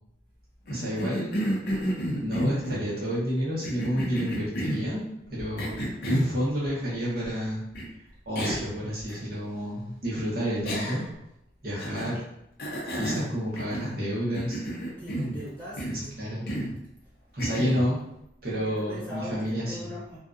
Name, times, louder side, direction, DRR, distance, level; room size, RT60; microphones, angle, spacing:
Cough, 0.7-2.9 3.6-4.9 5.6-6.4 7.7-7.9 8.3-8.7 9.1-9.2 10.6-11.2 11.8-12.2 12.6-14.0 14.3-15.4 15.8-16.1 16.5-16.8 17.4-17.9, equal, 55° left, 0.6 m, -31 dB
voice 1, 0.7-1.4 2.2-7.6 8.3-11.0 11.6-12.2 12.9-14.6 16.2-16.5 17.3-18.0 18.4-19.9, equal, 50° right, -7 dB, 0.8 m, -30 dB
voice 2, 15.0-16.8 18.5-20.2, equal, 10° left, -10 dB, 1.2 m, -41 dB
2.6 x 2.3 x 2.4 m, 0.83 s
head